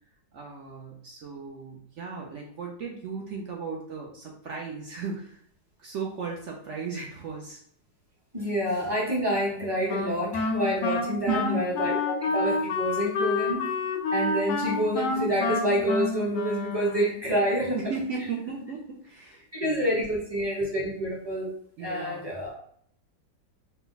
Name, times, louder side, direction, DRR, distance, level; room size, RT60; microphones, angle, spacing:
voice 1, 0.3-5.4 5.8-7.6 11.3-11.8 17.7-20.0 21.8-22.4, right 5 dB, 75° right, -1 dB, 0.6 m, -35 dB
voice 2, 8.3-13.7 14.1-17.8 19.5-21.5 21.8-22.5, equal, 20° right, -5 dB, 0.6 m, -28 dB
Wind instrument woodwind instrument, 9.9-17.3, left 3 dB, 70° left, 0.8 m, -29 dB
4.2 x 2.2 x 3.9 m, 0.62 s
omnidirectional pair, 2.0 m